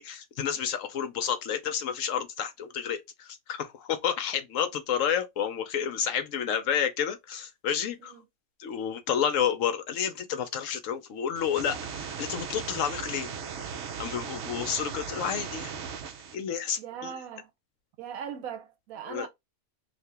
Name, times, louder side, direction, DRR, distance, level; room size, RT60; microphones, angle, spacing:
voice 1, 0.0-8.1 8.6-13.3 14.0-15.7 16.3-17.1 19.1-19.3, left 8 dB, 70° left, 0.9 m, -30 dB
sound 1, 11.3-16.3, right 6 dB, 60° right, 0.8 m, -37 dB
voice 2, 16.8-17.5 18.0-19.3, right 8 dB, 80° right, 1.1 m, -39 dB
2.8 x 2.6 x 3.3 m
omnidirectional pair, 1.5 m